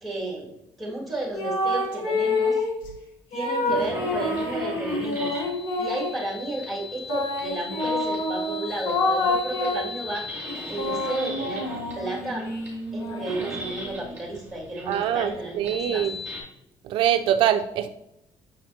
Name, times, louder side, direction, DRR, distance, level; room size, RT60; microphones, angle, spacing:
voice 1, 0.0-0.5 0.8-2.6 3.3-5.4 5.8-10.3 10.7-11.7 11.9-12.5 12.9-16.1, right 2 dB, ahead, -3 dB, 2.2 m, -32 dB
sound 1, 1.3-2.8 3.3-6.2 7.1-10.0 10.5-14.1, left 2 dB, 90° left, 1.2 m, -28 dB
sound 2, 3.6-16.4, left 2 dB, 15° right, 2.4 m, -38 dB
voice 2, 14.9-16.2 16.9-17.9, right 10 dB, 70° right, 9 dB, 0.4 m, -23 dB
6.6 x 5.3 x 2.8 m, 0.83 s
cardioid pair, 125°, 9 cm